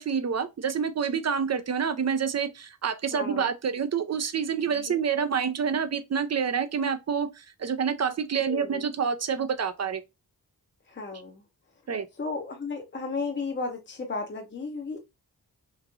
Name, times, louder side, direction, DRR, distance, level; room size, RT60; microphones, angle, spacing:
voice 1, 0.0-10.0 11.9-12.1, right 6 dB, 45° right, 0.5 m, -28 dB
voice 2, 3.1-3.5 4.8-5.0 8.5-8.8 10.9-11.4 12.2-15.0, left 4 dB, 30° left, 0.7 m, -34 dB
3.0 x 2.5 x 2.4 m
cardioid pair, 55°, 39 cm